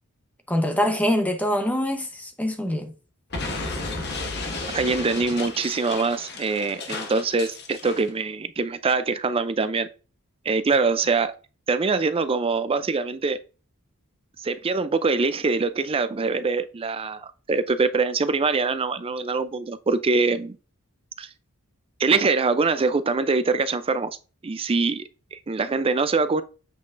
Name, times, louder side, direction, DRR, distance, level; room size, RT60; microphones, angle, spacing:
voice 1, 0.5-2.9, equal, 5° left, 0.9 m, -24 dB
Explosion, 3.3-8.1, left 3 dB, 50° left, 1.3 m, -33 dB
voice 2, 4.7-9.9 10.5-11.3 11.7-13.4 14.4-20.6 21.2-21.3 22.0-24.2 24.4-26.4, right 4 dB, 25° right, 0.4 m, -24 dB
7.4 x 6.1 x 2.5 m
head